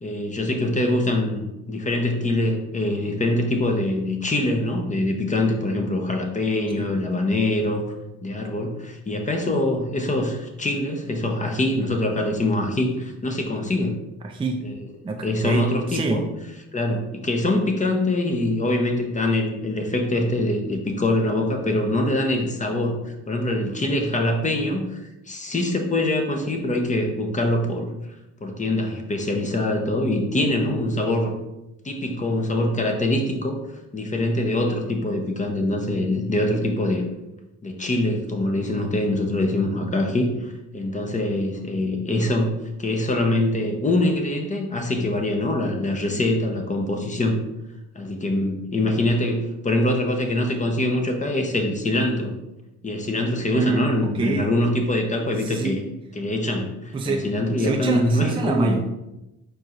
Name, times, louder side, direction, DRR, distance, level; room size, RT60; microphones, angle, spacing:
voice 1, 0.0-7.8 8.2-14.0 14.6-14.9 15.2-16.2 16.7-23.0 23.3-27.9 28.4-31.3 31.8-33.6 33.9-37.0 37.6-42.5 42.8-47.4 47.9-52.3 52.8-55.8 56.2-58.8, left 1 dB, 25° left, 3 dB, 0.8 m, -24 dB
voice 2, 14.2-14.6 15.0-16.2 53.5-53.9 54.1-54.5 55.4-55.8 56.9-57.2 57.6-58.8, right 3 dB, 15° right, 2 dB, 0.4 m, -25 dB
4.6 x 4.4 x 2.5 m, 0.94 s
cardioid pair, 90°, 30 cm